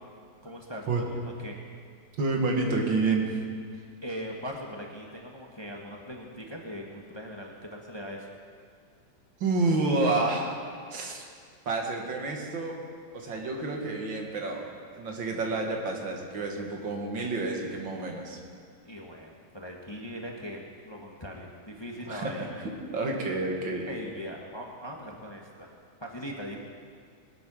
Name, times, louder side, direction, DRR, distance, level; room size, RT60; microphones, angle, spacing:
voice 1, 0.4-1.6 3.7-8.3 18.8-22.6 23.8-25.7 26.0-26.6, equal, 15° left, 0 dB, 1.1 m, -40 dB
voice 2, 2.2-3.3 9.4-10.5 10.9-11.2 11.7-12.8 13.1-14.7 14.9-18.4 22.1-22.5 22.9-23.9, right 3 dB, 90° right, 1 dB, 2.5 m, -29 dB
20.0 x 8.5 x 6.2 m, 2.1 s
omnidirectional pair, 2.0 m